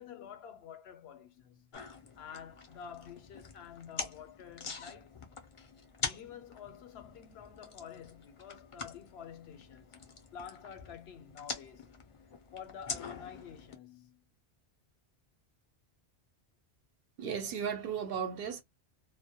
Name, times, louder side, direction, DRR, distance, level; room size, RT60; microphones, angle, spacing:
voice 1, 0.0-1.7 2.2-5.2 6.0-10.0 10.3-11.9 12.5-14.2, left 7 dB, 75° left, 0.8 m, -49 dB
sound 1, 1.7-13.7, left 5 dB, 45° left, 0.4 m, -45 dB
voice 2, 17.2-18.6, right 7 dB, 65° right, 0.7 m, -35 dB
2.1 x 2.1 x 2.7 m
omnidirectional pair, 1.1 m